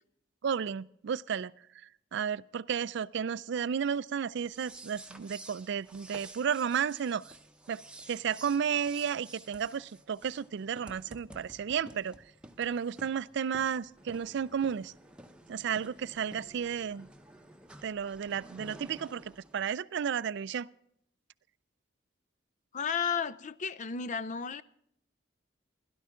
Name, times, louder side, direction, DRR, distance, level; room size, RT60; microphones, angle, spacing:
voice 1, 0.4-1.5 2.1-7.2 7.7-7.8 8.1-12.2 12.6-14.9 15.5-17.1 17.8-20.7, right 7 dB, 65° right, 0.4 m, -33 dB
sound 1, 4.4-19.6, right 1 dB, 5° right, 0.9 m, -52 dB
voice 2, 22.7-24.6, left 6 dB, 40° left, 0.5 m, -33 dB
16.5 x 12.0 x 3.7 m
head